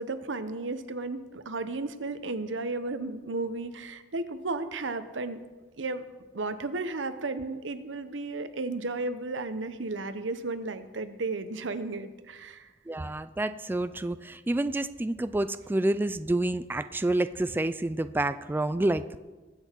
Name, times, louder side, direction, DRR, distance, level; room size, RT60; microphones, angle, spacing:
voice 1, 0.0-5.4 5.8-6.0 6.3-12.7, right 3 dB, 80° right, 10 dB, 0.9 m, -34 dB
voice 2, 12.9-19.2, right 1 dB, 10° right, 11 dB, 0.3 m, -28 dB
21.5 x 7.9 x 4.5 m, 1.2 s
head